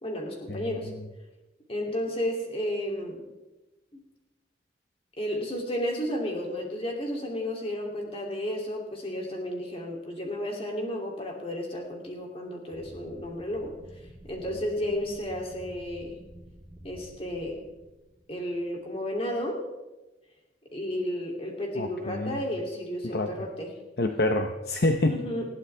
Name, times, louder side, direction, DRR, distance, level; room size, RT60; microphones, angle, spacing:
voice 1, 0.0-0.9 1.7-3.2 3.9-4.0 5.2-13.7 14.3-16.1 16.8-17.6 18.3-19.6 20.7-23.7 25.0-25.5, left 1 dB, 30° left, 0 dB, 2.8 m, -32 dB
sound 1, 12.7-18.9, equal, 5° left, 3.9 m, -50 dB
voice 2, 21.7-22.4 23.1-23.3 24.0-25.1, left 2 dB, 55° left, 5 dB, 0.9 m, -26 dB
20.0 x 14.5 x 3.4 m, 1.1 s
head